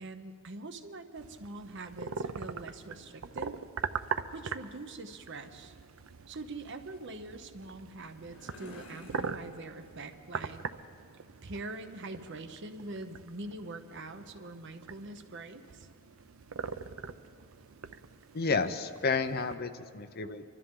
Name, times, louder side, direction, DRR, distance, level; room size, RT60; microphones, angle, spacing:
voice 1, 0.0-3.6 4.3-5.8 6.3-10.6 11.4-15.9, right 2 dB, 60° right, 7 dB, 0.9 m, -44 dB
sound 1, 1.1-19.6, right 5 dB, 80° right, 0.6 m, -42 dB
sound 2, 7.5-11.0, left 1 dB, 85° left, 4.4 m, -54 dB
voice 2, 18.3-20.4, left 4 dB, 50° left, 10 dB, 0.7 m, -31 dB
25.0 x 13.0 x 3.8 m, 2.5 s
head